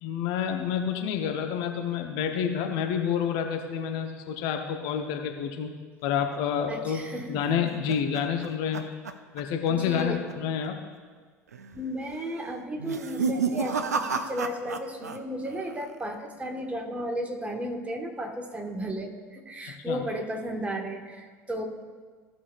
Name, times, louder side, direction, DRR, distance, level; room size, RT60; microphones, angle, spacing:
voice 1, 0.0-5.7 6.0-8.8 9.3-10.8 19.9-20.0, left 8 dB, 55° left, 4 dB, 0.8 m, -28 dB
voice 2, 6.7-7.5 9.7-10.2 11.7-21.6, equal, 15° right, 2 dB, 1.5 m, -34 dB
sound 1, 7.2-9.7 10.0-10.3 10.6-10.7 11.5-11.9 12.8-15.2 15.4-16.0, right 5 dB, 80° right, 0.5 m, -31 dB
15.5 x 6.1 x 2.5 m, 1.5 s
figure-of-eight pair, 65°, 9 cm